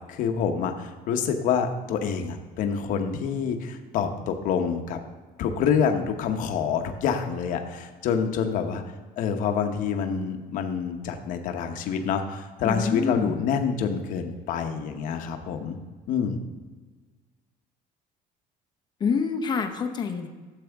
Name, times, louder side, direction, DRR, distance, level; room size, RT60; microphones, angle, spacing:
voice 1, 0.1-5.0 5.4-8.8 9.2-15.8 16.1-16.4, left 7 dB, 55° left, 6 dB, 0.9 m, -27 dB
voice 2, 12.6-13.4 19.0-20.3, left 5 dB, 25° left, 7 dB, 0.7 m, -27 dB
12.5 x 7.5 x 3.5 m, 1.4 s
cardioid pair, 165°, 16 cm